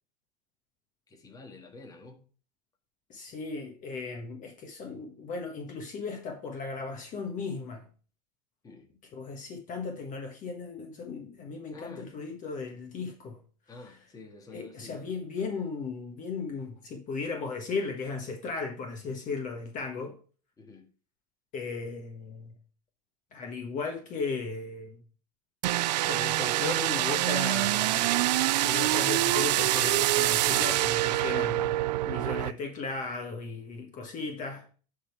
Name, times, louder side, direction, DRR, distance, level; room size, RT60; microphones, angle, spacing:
voice 1, 1.1-2.3 8.6-8.9 11.7-12.1 13.7-15.3 20.6-20.9, left 3 dB, 15° left, 1.7 m, -49 dB
voice 2, 3.1-7.9 9.1-13.4 14.5-20.2 21.5-22.5 23.3-25.0 26.0-28.1 28.6-31.8 32.1-34.6, left 4 dB, 40° left, 1.5 m, -36 dB
sound 1, 25.6-32.5, right 16 dB, 80° right, 0.4 m, -26 dB
sound 2, 25.9-31.5, right 5 dB, 25° right, 2.1 m, -51 dB
10.0 x 3.9 x 4.6 m
supercardioid pair, 115°, 21 cm